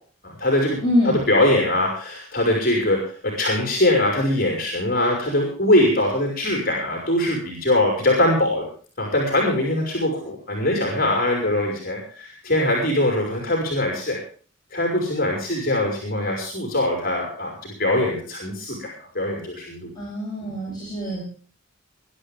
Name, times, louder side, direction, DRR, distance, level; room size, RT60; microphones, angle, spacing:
voice 1, 0.2-0.8 1.0-8.7 9.0-14.2 14.7-19.9 20.4-20.5, left 1 dB, 45° left, 0 dB, 5.4 m, -22 dB
voice 2, 0.8-1.2 20.0-21.2, left 1 dB, 20° left, -6 dB, 7.8 m, -24 dB
22.0 x 12.0 x 3.6 m, 0.42 s
head